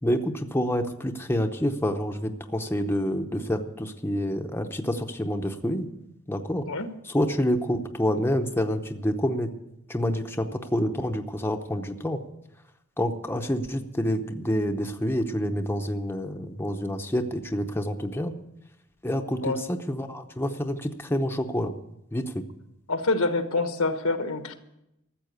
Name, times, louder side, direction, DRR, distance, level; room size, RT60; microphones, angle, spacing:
voice 1, 0.0-5.9 6.3-6.6 7.0-9.5 9.9-12.2 13.0-18.3 19.0-21.7 22.1-22.4, equal, 10° left, 4 dB, 0.8 m, -28 dB
voice 2, 22.9-24.5, left 3 dB, 85° left, 8 dB, 1.3 m, -26 dB
14.0 x 7.5 x 9.3 m, 0.87 s
head